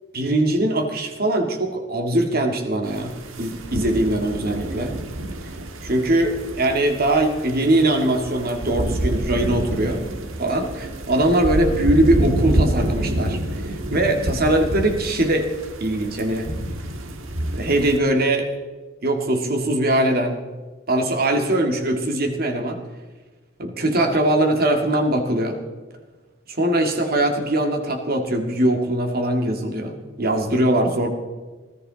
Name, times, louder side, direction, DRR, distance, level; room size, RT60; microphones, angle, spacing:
voice 1, 0.1-4.9 5.8-10.0 10.4-15.5 15.8-16.5 17.5-18.5 19.0-20.4 20.9-22.8 23.6-25.6 26.5-31.1, right 1 dB, 50° right, 4 dB, 2.0 m, -21 dB
sound 1, 2.9-18.0, right 1 dB, 85° right, 1.5 m, -27 dB
19.5 x 14.0 x 4.0 m, 1.3 s
head